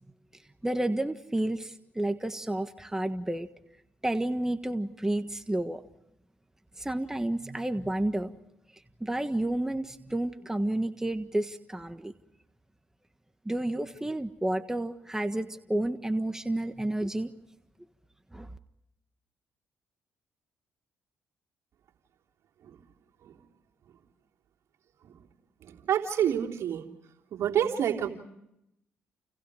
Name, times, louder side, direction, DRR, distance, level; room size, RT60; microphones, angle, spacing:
voice 1, 0.6-3.5 4.0-5.8 6.8-8.3 9.0-12.1 13.4-17.3 18.3-18.5, right 1 dB, 10° right, 9 dB, 1.5 m, -30 dB
voice 2, 25.6-26.8 27.3-28.1, right 9 dB, 65° right, 0 dB, 3.5 m, -28 dB
29.5 x 29.5 x 5.0 m, 0.82 s
hypercardioid pair, 55°, 5 cm